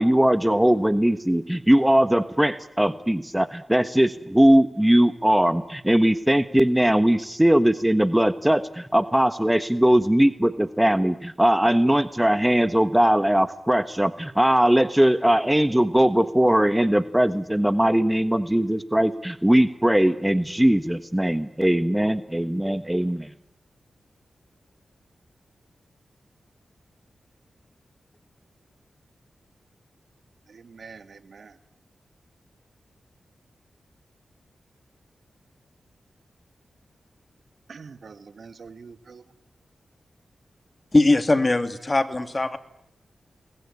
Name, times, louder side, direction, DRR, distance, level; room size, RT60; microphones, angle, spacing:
voice 1, 0.0-23.3, right 1 dB, 10° right, 11 dB, 1.3 m, -20 dB
voice 2, 30.5-31.6 37.7-39.2, right 5 dB, 65° right, 10 dB, 1.8 m, -45 dB
voice 3, 40.9-42.6, left 2 dB, 35° left, 9 dB, 2.6 m, -20 dB
28.0 x 21.0 x 9.8 m, 0.81 s
cardioid pair, 45°, 0 cm